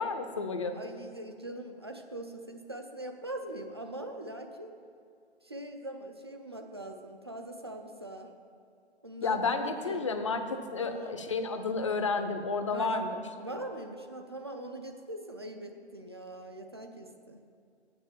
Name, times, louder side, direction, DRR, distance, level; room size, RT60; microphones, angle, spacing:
voice 1, 0.0-0.8 9.2-13.2, left 4 dB, 30° left, 7 dB, 0.6 m, -31 dB
voice 2, 0.7-4.7 5.4-8.3 9.0-10.1 10.8-11.2 12.7-13.1 13.4-17.4, right 1 dB, 25° right, 4 dB, 0.4 m, -42 dB
7.7 x 6.7 x 7.1 m, 2.4 s
figure-of-eight pair, 145°, 34 cm